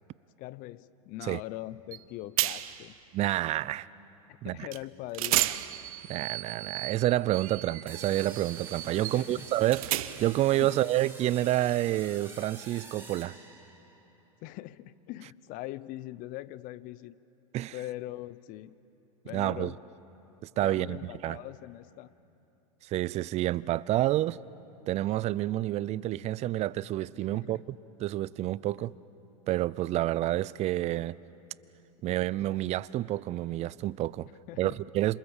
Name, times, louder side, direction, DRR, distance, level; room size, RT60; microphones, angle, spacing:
voice 1, 0.4-2.9 4.4-5.6 9.1-9.5 10.6-10.8 14.4-17.2 17.7-18.8 19.2-19.8 20.6-22.1 27.3-27.6 34.5-34.8, left 16 dB, 45° left, 18 dB, 0.8 m, -41 dB
sound 1, 1.9-2.0 2.4-2.9 4.7-4.8 5.1-10.4, right 16 dB, 65° right, 1.0 m, -33 dB
voice 2, 3.1-3.9 4.4-4.7 6.1-9.9 10.2-13.4 17.5-17.7 19.3-19.7 20.6-21.4 22.8-24.4 24.9-27.6 28.0-28.9 29.5-31.2 32.0-34.3 34.6-35.2, right 15 dB, 35° right, 21 dB, 0.6 m, -29 dB
sound 2, 7.9-14.0, right 3 dB, 10° right, 4.6 m, -48 dB
27.5 x 27.0 x 7.3 m, 2.9 s
hypercardioid pair, 105°, 19 cm